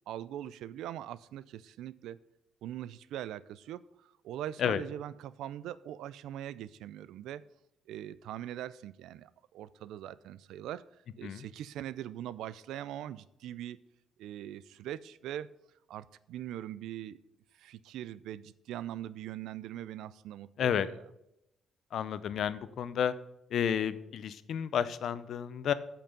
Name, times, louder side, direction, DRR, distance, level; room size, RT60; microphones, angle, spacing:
voice 1, 0.1-2.2 2.6-7.4 7.9-10.8 11.2-13.8 14.2-15.5 15.9-17.2 17.6-21.0, right 12 dB, 85° right, 18 dB, 0.4 m, -42 dB
voice 2, 21.9-23.1 23.5-25.7, left 8 dB, 65° left, 15 dB, 0.6 m, -31 dB
8.7 x 5.9 x 6.8 m, 0.84 s
cardioid pair, 90°, 0 cm